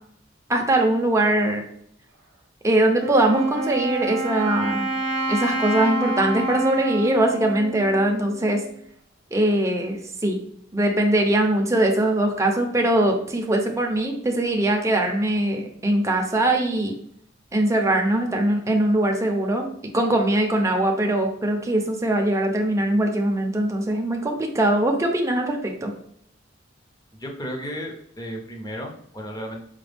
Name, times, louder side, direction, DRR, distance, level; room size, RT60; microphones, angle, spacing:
voice 1, 0.5-1.6 2.6-4.9 5.3-8.6 9.3-10.4 10.7-16.9 17.5-19.7 19.9-25.9, right 1 dB, 15° right, 2 dB, 0.5 m, -21 dB
Wind instrument woodwind instrument, 3.0-8.7, right 1 dB, 65° right, 0.7 m, -28 dB
voice 2, 27.2-29.6, equal, 20° left, 1 dB, 0.6 m, -34 dB
5.0 x 2.2 x 3.3 m, 0.67 s
head